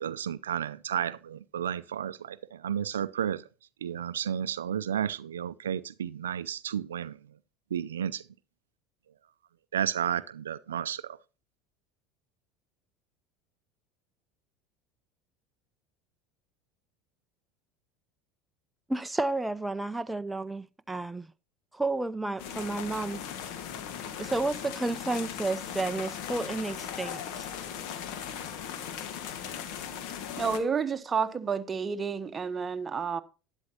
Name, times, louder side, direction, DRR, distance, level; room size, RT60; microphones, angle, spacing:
voice 1, 0.0-3.5 3.8-7.4 7.7-8.3 9.7-11.2, right 9 dB, 90° right, 0.4 m, -32 dB
voice 2, 18.9-21.3 21.7-23.2 24.2-27.5, right 2 dB, 10° right, 0.4 m, -31 dB
sound 1, 22.4-30.6, left 8 dB, 65° left, 1.6 m, -38 dB
voice 3, 30.4-33.2, right 6 dB, 25° right, 1.0 m, -30 dB
11.5 x 10.5 x 2.8 m
hypercardioid pair, 85°, 0 cm